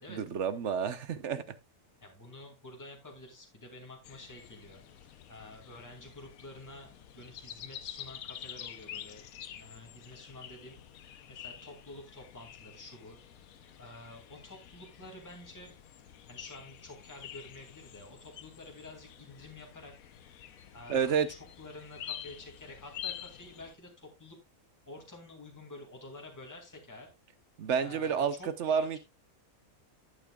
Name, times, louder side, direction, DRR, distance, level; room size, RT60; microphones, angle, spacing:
voice 1, 0.0-1.4 20.9-21.3 27.6-29.0, right 7 dB, 60° right, 1.0 m, -30 dB
voice 2, 2.0-4.8 5.3-9.3 9.5-10.8 11.3-13.2 13.8-15.7 16.3-20.0 20.7-24.4 24.9-27.1 27.8-29.0, left 2 dB, 10° left, 2.2 m, -49 dB
sound 1, 4.0-23.7, left 10 dB, 75° left, 1.2 m, -48 dB
11.0 x 8.8 x 2.3 m
omnidirectional pair, 1.5 m